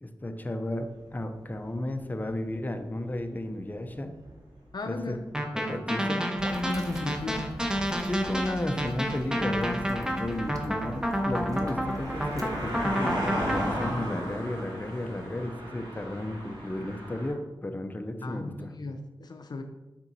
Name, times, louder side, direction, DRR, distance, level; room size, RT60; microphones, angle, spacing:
voice 1, 0.0-4.1 4.9-5.2 5.5-6.2 8.1-18.7, left 1 dB, 20° left, 6 dB, 0.7 m, -33 dB
sound 1, 2.9-3.2 3.9-4.0 4.2-4.4 6.9-7.0 7.1-17.3, equal, 70° right, 2.1 m, -37 dB
voice 2, 4.7-5.2 6.1-7.6 18.2-19.6, left 2 dB, 55° left, 6 dB, 0.5 m, -36 dB
sound 2, 5.3-13.9, equal, 10° right, 1.0 m, -30 dB
sound 3, 6.4-12.9, right 2 dB, 45° right, 0.9 m, -43 dB
6.0 x 4.3 x 4.1 m, 1.0 s
cardioid pair, 50°, 8 cm